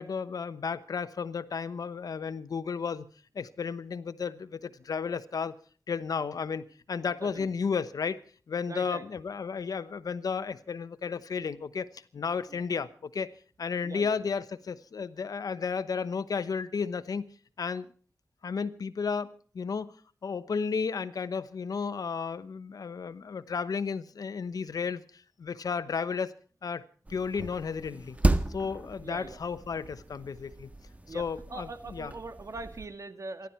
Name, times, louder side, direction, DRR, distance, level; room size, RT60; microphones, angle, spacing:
voice 1, 0.0-3.1 3.3-5.5 5.9-8.2 8.5-13.3 13.6-17.3 17.6-17.9 18.4-19.9 20.2-25.0 25.4-26.3 26.6-26.8 27.1-28.2 28.5-30.7 31.1-32.1, left 5 dB, 85° left, 14 dB, 0.9 m, -33 dB
voice 2, 8.7-9.0 12.5-12.6 13.8-14.2 29.0-29.4 31.0-31.2 31.5-33.5, right 3 dB, 60° right, 9 dB, 2.0 m, -41 dB
sound 1, 27.1-32.9, right 2 dB, 25° right, 1.5 m, -33 dB
27.5 x 12.0 x 4.4 m, 0.42 s
cardioid pair, 55°, 6 cm